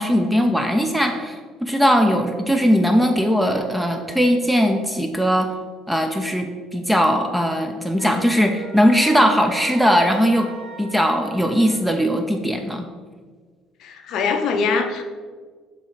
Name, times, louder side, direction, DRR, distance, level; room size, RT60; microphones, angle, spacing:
voice 1, 0.0-5.5 5.9-10.5 10.8-12.9, equal, ahead, 4 dB, 0.3 m, -19 dB
Wind instrument woodwind instrument, 8.0-11.9, right 3 dB, 65° right, 1.3 m, -40 dB
voice 2, 13.8-15.0, left 5 dB, 45° left, 5 dB, 0.6 m, -22 dB
7.6 x 2.7 x 4.9 m, 1.5 s
cardioid pair, 175°, 0 cm